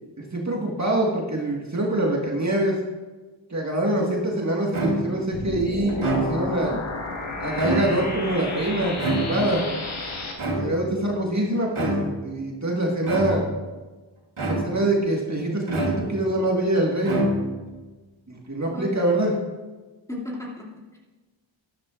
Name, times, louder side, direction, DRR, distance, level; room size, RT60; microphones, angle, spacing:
voice 1, 0.3-2.8 3.5-6.8 7.4-9.6 10.4-13.5 14.4-17.3 18.3-19.4, right 1 dB, 35° right, -2 dB, 1.7 m, -24 dB
sound 1, 4.7-5.3 5.9-6.6 7.4-8.2 9.0-9.7 10.4-11.0 11.7-12.3 13.0-13.6 14.4-15.0 15.7-16.4 17.0-17.7, right 1 dB, 85° right, 2.8 m, -27 dB
sound 2, 5.3-10.3, left 3 dB, 85° left, 1.7 m, -32 dB
voice 2, 18.7-19.4 20.1-21.0, left 1 dB, 5° left, -4 dB, 2.5 m, -36 dB
12.5 x 12.0 x 2.5 m, 1.3 s
wide cardioid pair, 60°, 47 cm